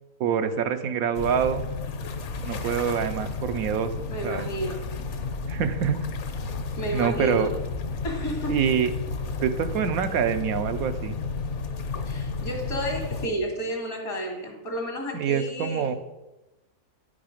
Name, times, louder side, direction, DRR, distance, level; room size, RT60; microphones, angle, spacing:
voice 1, 0.2-1.6 2.4-3.9 4.2-4.5 5.5-6.0 6.9-7.5 8.5-8.9 9.4-11.2 15.1-15.9, right 7 dB, 80° right, 9 dB, 1.1 m, -25 dB
sound 1, 1.1-13.3, left 4 dB, 60° left, 1.0 m, -32 dB
voice 2, 4.1-4.8 6.8-7.6 8.0-8.6 12.1-15.9, right 1 dB, 80° left, 0 dB, 2.5 m, -31 dB
9.7 x 5.9 x 5.0 m, 1.0 s
omnidirectional pair, 1.5 m